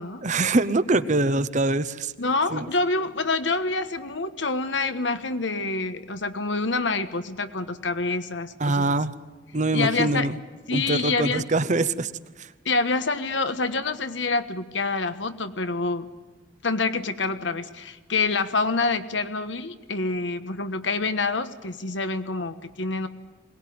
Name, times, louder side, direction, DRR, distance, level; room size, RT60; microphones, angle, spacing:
voice 1, 0.2-2.1 2.5-2.7 8.6-9.1 9.5-10.4 10.7-12.1 12.4-12.5, right 2 dB, 40° right, 13 dB, 0.9 m, -23 dB
voice 2, 2.2-9.0 9.7-10.3 10.7-11.4 12.6-16.1 16.6-23.1, left 3 dB, 70° left, 10 dB, 1.4 m, -27 dB
22.0 x 19.0 x 9.5 m, 1.3 s
head